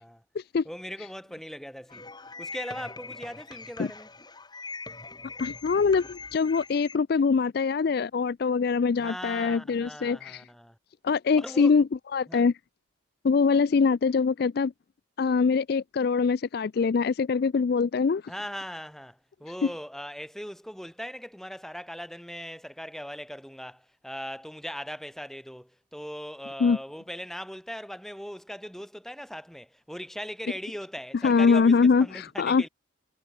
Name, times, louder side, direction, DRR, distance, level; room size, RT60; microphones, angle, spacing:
voice 1, 0.6-2.1 2.4-4.1 9.0-10.8 11.4-11.8 12.3-12.5 18.3-32.7, equal, ahead, 4.3 m, -39 dB
sound 1, 1.9-7.0, left 3 dB, 20° left, 3.0 m, -42 dB
voice 2, 5.4-10.4 11.0-12.5 13.2-14.7 15.2-18.2 26.6-26.8 31.2-32.6, left 5 dB, 50° left, 0.3 m, -23 dB
head